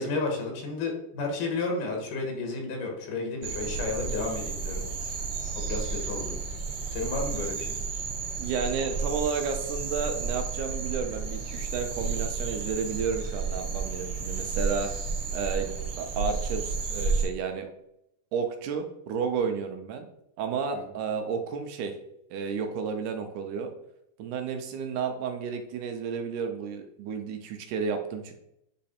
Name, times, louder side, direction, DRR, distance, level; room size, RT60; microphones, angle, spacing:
voice 1, 0.0-4.8 5.6-6.4 6.9-7.8 20.7-20.8, left 3 dB, 90° left, 2 dB, 2.8 m, -32 dB
sound 1, 3.4-17.3, right 4 dB, 50° right, 2.4 m, -32 dB
voice 2, 8.4-14.9 15.3-17.7 18.3-20.1 20.4-22.0 22.3-23.7 24.2-28.3, right 6 dB, 80° right, 6 dB, 2.2 m, -32 dB
9.4 x 3.2 x 4.2 m, 0.79 s
omnidirectional pair, 3.6 m